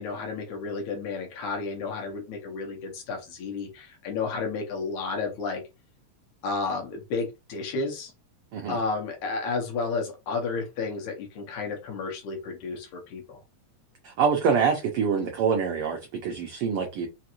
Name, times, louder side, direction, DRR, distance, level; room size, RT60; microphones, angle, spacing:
voice 1, 0.0-5.6 6.4-8.1 8.7-13.4, left 4 dB, 80° left, 2 dB, 2.4 m, -32 dB
voice 2, 14.0-17.1, right 6 dB, 75° right, 3 dB, 1.3 m, -25 dB
5.2 x 2.5 x 2.9 m, 0.25 s
omnidirectional pair, 3.4 m